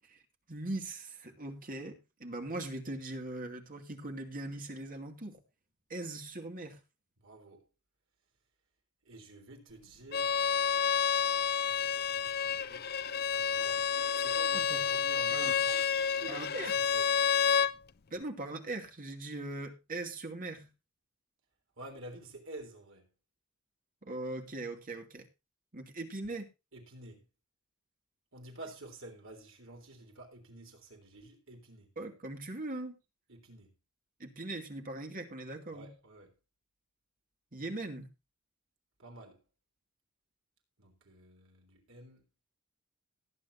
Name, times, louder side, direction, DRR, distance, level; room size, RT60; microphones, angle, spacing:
voice 1, 0.5-5.4 5.9-6.8 14.5-14.9 15.3-15.5 16.3-16.7 18.1-20.7 24.0-25.2 25.7-26.5 32.0-33.0 34.2-35.9 37.5-38.1, right 2 dB, 40° right, 2.5 m, -40 dB
voice 2, 7.2-7.7 9.0-10.5 11.6-12.9 13.3-15.9 16.2-17.3 21.8-23.1 26.7-27.3 28.3-31.9 33.3-33.7 35.7-36.4 39.0-39.4 40.8-42.2, right 1 dB, 65° right, 3.7 m, -50 dB
Bowed string instrument, 10.1-17.7, left 7 dB, 45° left, 0.6 m, -29 dB
18.5 x 9.5 x 2.7 m
head